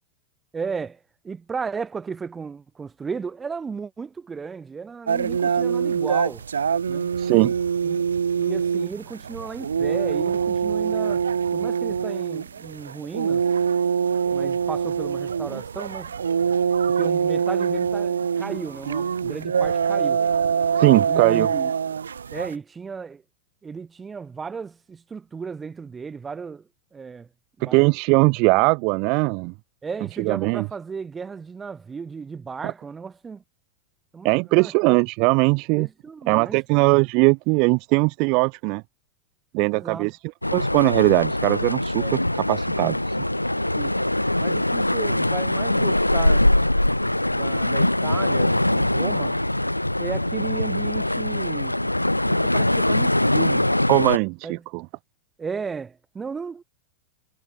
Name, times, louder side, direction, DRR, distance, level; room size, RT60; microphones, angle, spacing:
voice 1, 0.5-6.4 6.9-7.2 7.8-8.0 8.3-11.3 11.5-13.5 14.3-16.2 16.9-20.2 21.1-21.9 22.3-23.2 23.6-27.3 27.6-27.9 29.8-33.4 34.1-35.0 35.7-36.9 39.7-40.1 41.9-42.2 43.7-43.9 44.4-46.5 47.3-49.4 50.0-51.8 52.3-53.7 54.4-54.7 55.4-56.6, right 5 dB, 15° right, 4.3 m, -35 dB
sound 1, 5.1-22.5, right 6 dB, 70° right, 1.3 m, -24 dB
voice 2, 7.2-7.5 20.8-21.5 27.6-29.5 30.2-30.7 32.6-32.7 34.2-35.9 36.3-38.8 39.5-40.1 40.5-42.0 42.5-43.2 53.9-54.8, right 31 dB, 45° right, 0.5 m, -20 dB
sound 2, 40.4-54.2, left 1 dB, 85° left, 0.4 m, -22 dB
figure-of-eight pair, 90°, 0 cm